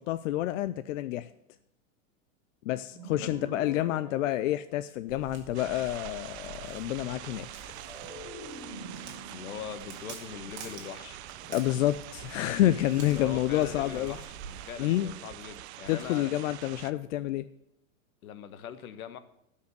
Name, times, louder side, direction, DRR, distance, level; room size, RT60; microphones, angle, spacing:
voice 1, 0.1-1.3 2.7-7.7 11.5-14.2 14.8-15.1 15.9-17.5, left 14 dB, 60° left, 0.5 m, -29 dB
sound 1, 2.9-5.3 7.7-11.0, right 1 dB, 5° left, 4.9 m, -46 dB
Walk footsteps, 5.1-14.7, right 5 dB, 25° right, 2.0 m, -48 dB
sound 2, 5.5-16.9, right 15 dB, 50° right, 0.6 m, -45 dB
voice 2, 9.3-11.5 12.6-16.3 18.2-19.2, left 8 dB, 80° left, 1.3 m, -42 dB
11.5 x 5.5 x 8.1 m
supercardioid pair, 145°, 43 cm